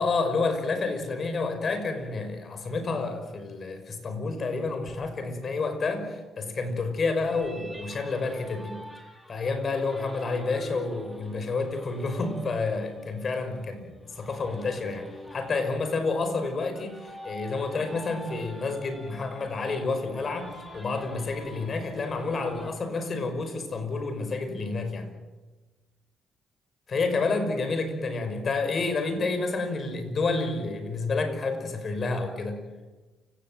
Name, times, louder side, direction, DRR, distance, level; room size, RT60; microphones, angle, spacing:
voice 1, 0.0-8.8 9.3-25.1 26.9-32.6, left 3 dB, 45° left, 8 dB, 5.9 m, -29 dB
sound 1, 7.2-22.7, equal, 5° left, 6.2 m, -46 dB
29.5 x 18.0 x 7.8 m, 1.2 s
cardioid pair, 90°, 0 cm